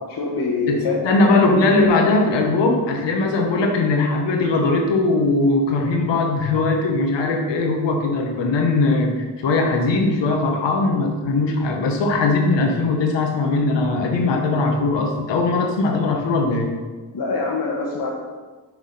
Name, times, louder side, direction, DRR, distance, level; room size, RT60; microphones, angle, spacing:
voice 1, 0.0-1.0 17.1-18.2, left 3 dB, 60° left, -3 dB, 1.2 m, -24 dB
voice 2, 0.7-9.1 9.4-16.7, left 3 dB, 90° left, 2 dB, 1.2 m, -20 dB
6.2 x 4.7 x 5.4 m, 1.4 s
supercardioid pair, 45°, 42 cm